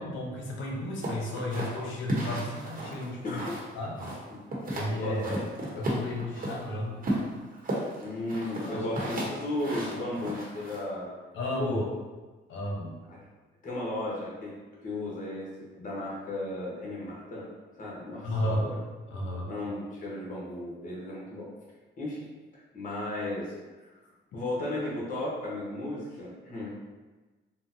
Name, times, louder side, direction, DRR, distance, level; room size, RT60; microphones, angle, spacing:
voice 1, 0.0-3.4 3.7-4.1 4.7-5.4 5.7-7.2 8.6-9.2 11.3-11.8 12.5-13.0 18.2-18.7 19.1-19.5, left 1 dB, 75° left, -2 dB, 0.8 m, -33 dB
sound 1, 1.0-3.7 4.0-4.9 5.2-6.6 7.0-10.8, right 1 dB, 45° right, 0.9 m, -33 dB
voice 2, 3.2-3.6 4.3-4.4 4.9-5.4 8.0-11.1 11.6-11.8 13.1-13.3 13.6-14.5 14.8-15.5 15.8-17.5 17.8-18.7 19.4-21.5 22.0-22.2 22.7-23.5 23.9-24.0 24.3-26.7, left 1 dB, 40° left, -5 dB, 1.0 m, -34 dB
3.7 x 2.1 x 2.7 m, 1.3 s
cardioid pair, 90°, 20 cm